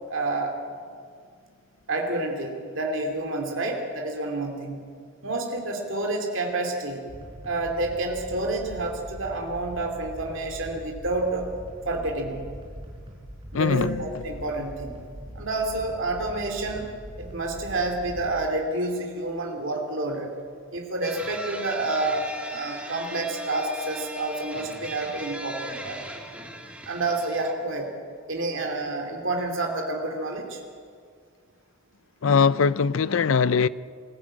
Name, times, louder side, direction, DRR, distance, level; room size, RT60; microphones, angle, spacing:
voice 1, 0.1-0.6 1.9-4.8 5.2-7.0 7.4-11.5 11.8-12.4 13.5-14.9 15.3-16.9 17.2-20.3 20.7-26.0 26.8-27.9 28.3-30.6, right 2 dB, 60° right, 2.7 m, -29 dB
sound 1, 7.1-18.3, equal, 25° right, 5.0 m, -42 dB
voice 2, 13.5-14.0 32.2-33.7, left 5 dB, 65° left, 0.5 m, -21 dB
sound 2, 21.0-27.5, right 1 dB, 5° right, 1.9 m, -39 dB
21.5 x 14.5 x 8.8 m
head